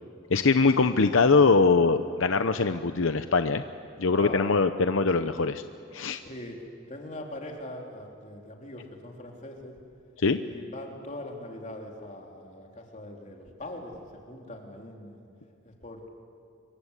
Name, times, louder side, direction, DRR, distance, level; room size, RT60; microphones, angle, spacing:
voice 1, 0.3-3.6 4.0-5.6 5.9-6.2 10.2-10.4, left 4 dB, 70° left, 9 dB, 0.8 m, -22 dB
voice 2, 4.1-4.6 6.3-6.6 6.9-9.7 10.4-14.0 14.3-15.3 15.6-16.1, left 1 dB, 35° left, 1 dB, 3.5 m, -41 dB
26.0 x 24.0 x 8.3 m, 2.7 s
head